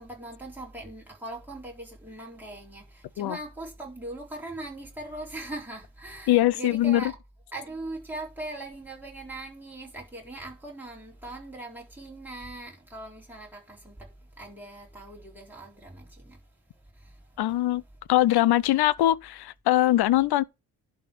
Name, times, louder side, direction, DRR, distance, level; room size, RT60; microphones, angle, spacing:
voice 1, 0.0-7.1 7.5-16.4 16.9-17.4, right 2 dB, 5° right, 4.0 m, -40 dB
voice 2, 6.3-7.0 17.4-17.8 18.1-20.4, left 14 dB, 60° left, 0.6 m, -22 dB
11.5 x 3.8 x 7.6 m
cardioid pair, 165°, 43 cm